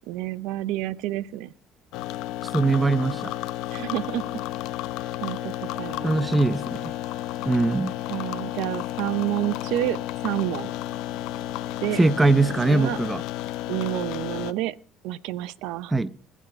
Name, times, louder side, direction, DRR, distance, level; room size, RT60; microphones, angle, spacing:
voice 1, 0.1-1.5 3.7-4.2 5.2-5.5 5.8-6.2 8.1-10.7 11.8-12.0 12.5-13.0 13.7-14.8 15.0-15.9, right 15 dB, 85° right, 0.6 m, -29 dB
sound 1, 1.9-14.5, left 14 dB, 80° left, 0.6 m, -32 dB
voice 2, 2.5-3.3 6.0-6.9 7.4-7.9 12.0-13.2 15.9-16.1, right 3 dB, 15° right, 0.7 m, -21 dB
20.5 x 7.3 x 5.4 m
cardioid pair, 105°, 0 cm